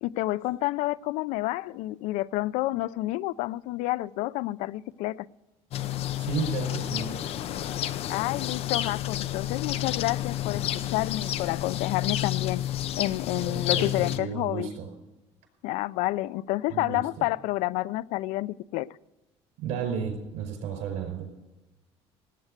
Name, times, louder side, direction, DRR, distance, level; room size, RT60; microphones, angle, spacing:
voice 1, 0.0-5.3 8.1-12.6 13.0-14.7 15.6-18.9, left 18 dB, 90° left, 0.5 m, -29 dB
sound 1, 5.7-14.2, left 12 dB, 60° left, 0.8 m, -30 dB
voice 2, 6.2-7.1 13.3-14.9 16.7-17.0 19.6-21.3, right 7 dB, 80° right, 5.0 m, -33 dB
18.0 x 9.3 x 6.5 m
cardioid pair, 130°, 12 cm